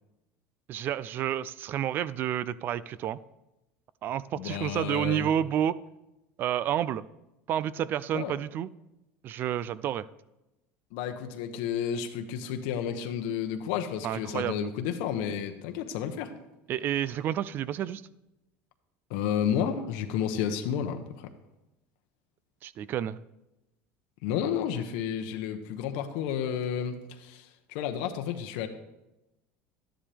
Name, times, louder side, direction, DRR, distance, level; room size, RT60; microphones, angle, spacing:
voice 1, 0.7-3.2 4.0-5.8 6.4-7.0 7.5-8.7 9.2-10.1 14.0-14.7 16.7-18.0 22.6-23.2, right 10 dB, 40° right, 18 dB, 0.4 m, -30 dB
voice 2, 4.4-5.3 8.1-8.3 10.9-16.3 19.1-21.3 24.2-28.7, left 8 dB, 75° left, 6 dB, 1.0 m, -31 dB
12.5 x 10.0 x 3.4 m, 0.95 s
cardioid pair, 140°, 5 cm